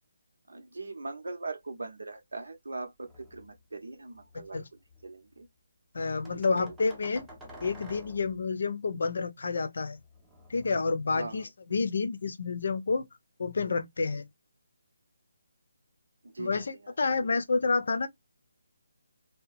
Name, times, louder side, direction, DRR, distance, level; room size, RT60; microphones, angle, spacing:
voice 1, 0.5-4.6 5.0-5.5 6.5-6.7 11.1-11.5 16.2-17.3, right 3 dB, 85° right, 0.9 m, -41 dB
sound 1, 3.0-3.6 4.2-5.1 6.2-8.5 10.0-11.4, equal, 5° right, 0.6 m, -50 dB
voice 2, 5.9-7.3 7.6-10.0 10.5-13.1 13.4-14.3 16.4-18.1, left 4 dB, 60° left, 0.6 m, -29 dB
2.8 x 2.2 x 2.5 m
hypercardioid pair, 165°, 0 cm